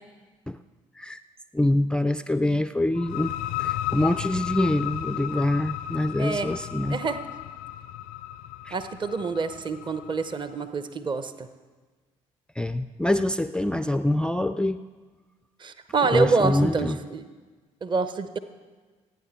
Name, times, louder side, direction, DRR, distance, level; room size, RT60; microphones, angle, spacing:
voice 1, 1.5-3.3 3.6-7.0 8.7-8.8 12.6-14.8 16.1-17.0, left 1 dB, 5° left, 12 dB, 0.4 m, -25 dB
sound 1, 2.9-10.4, left 14 dB, 60° left, 0.5 m, -34 dB
voice 2, 6.2-6.5 6.9-7.2 8.7-11.5 15.6-17.3 17.8-18.4, right 4 dB, 30° right, 11 dB, 0.9 m, -26 dB
26.5 x 9.6 x 3.6 m, 1.4 s
figure-of-eight pair, 50°, 16 cm